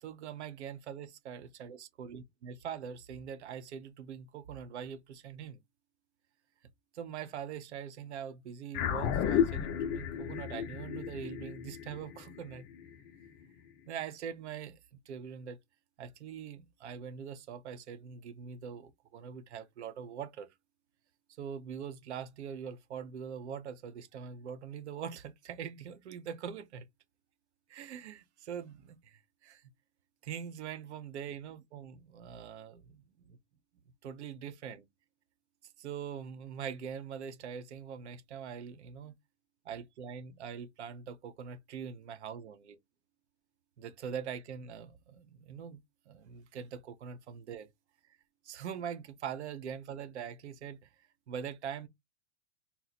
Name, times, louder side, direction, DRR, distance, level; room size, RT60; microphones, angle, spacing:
voice 1, 0.0-5.6 6.9-12.7 13.9-14.8 15.1-15.6 16.0-20.5 21.4-26.9 27.7-29.6 30.2-33.4 34.0-34.8 35.8-39.1 39.6-42.8 43.8-45.8 46.1-47.7 48.4-50.9 51.3-51.9, right 7 dB, 80° right, 0.7 m, -43 dB
sound 1, 8.7-13.4, left 9 dB, 30° left, 0.5 m, -33 dB
2.9 x 2.0 x 4.0 m
hypercardioid pair, 125°, 34 cm